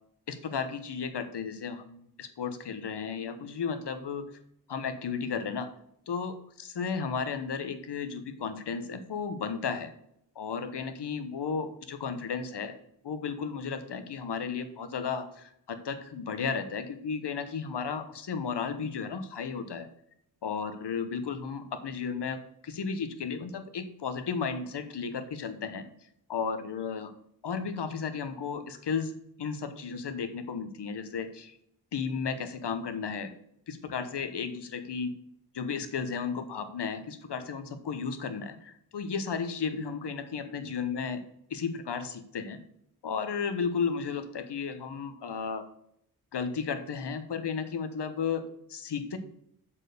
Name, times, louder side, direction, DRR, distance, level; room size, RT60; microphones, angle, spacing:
voice 1, 0.3-4.3 4.7-5.8 6.1-9.9 10.3-12.8 13.0-19.9 20.4-25.9 26.3-27.1 27.4-31.6 31.9-33.3 33.7-35.1 35.5-41.2 41.5-42.6 43.0-45.7 46.3-49.2, left 6 dB, 85° left, 8 dB, 1.1 m, -34 dB
7.2 x 4.5 x 6.7 m, 0.71 s
wide cardioid pair, 85°, 40 cm